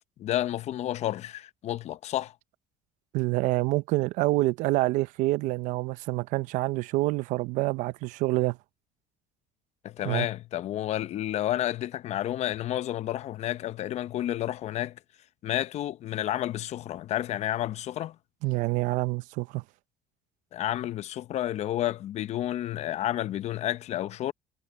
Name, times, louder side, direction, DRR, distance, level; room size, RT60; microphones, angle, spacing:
voice 1, 0.2-2.3 9.8-15.0 15.4-18.2 20.5-24.3, left 13 dB, 60° left, 0.8 m, -30 dB
voice 2, 3.1-8.6 10.0-10.3 18.4-19.6, right 20 dB, 80° right, 0.7 m, -27 dB
cardioid pair, 100°, 13 cm